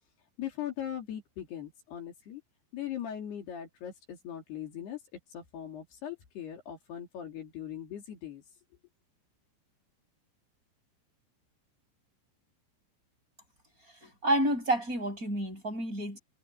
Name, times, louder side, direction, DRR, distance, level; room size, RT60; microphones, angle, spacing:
voice 1, 0.4-2.4 2.7-5.0 5.3-8.4, left 10 dB, 65° left, 4.9 m, -40 dB
voice 2, 14.0-16.2, right 1 dB, 20° right, 6.5 m, -29 dB
omnidirectional pair, 5.3 m